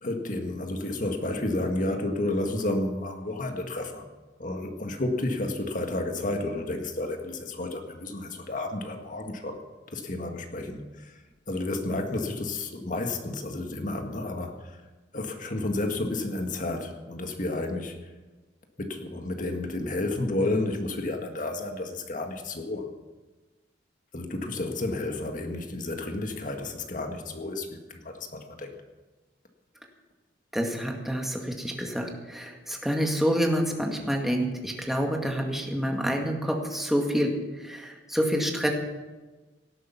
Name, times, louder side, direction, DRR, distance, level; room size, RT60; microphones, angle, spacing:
voice 1, 0.0-4.1 4.4-9.6 9.9-11.1 11.5-14.8 15.1-18.0 18.8-22.9 24.1-28.7, left 2 dB, 45° left, 4 dB, 1.8 m, -31 dB
voice 2, 30.5-38.7, equal, ahead, 1 dB, 1.9 m, -28 dB
18.0 x 11.5 x 5.9 m, 1.2 s
head